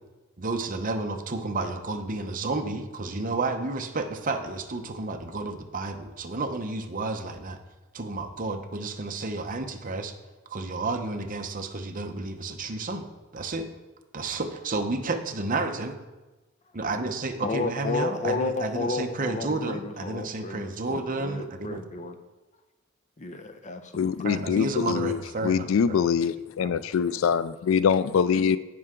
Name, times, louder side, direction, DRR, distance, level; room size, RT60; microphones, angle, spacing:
voice 1, 0.4-7.6 7.9-10.1 10.5-13.1 13.3-13.7 14.1-15.9 16.7-21.8 24.2-26.1 26.6-26.7, right 3 dB, 40° right, 5 dB, 0.9 m, -31 dB
voice 2, 17.4-22.2 23.2-24.1, left 3 dB, 35° left, 7 dB, 0.7 m, -32 dB
voice 3, 23.9-28.6, left 6 dB, 70° left, 16 dB, 0.3 m, -24 dB
15.5 x 5.6 x 3.7 m, 1.1 s
head